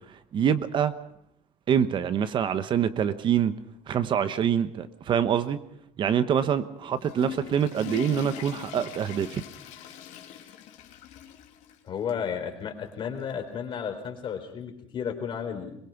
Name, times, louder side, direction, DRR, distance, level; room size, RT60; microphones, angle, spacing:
voice 1, 0.3-0.9 1.7-3.5 3.9-5.6 6.0-9.4, right 8 dB, 40° right, 1.0 m, -25 dB
Water / Toilet flush, 6.8-11.8 12.1-12.2 12.9-13.0 14.3-14.4, left 11 dB, 75° left, 2.9 m, -41 dB
voice 2, 11.8-15.8, left 7 dB, 40° left, 3.8 m, -33 dB
23.0 x 21.5 x 5.9 m
cardioid pair, 160°, 12 cm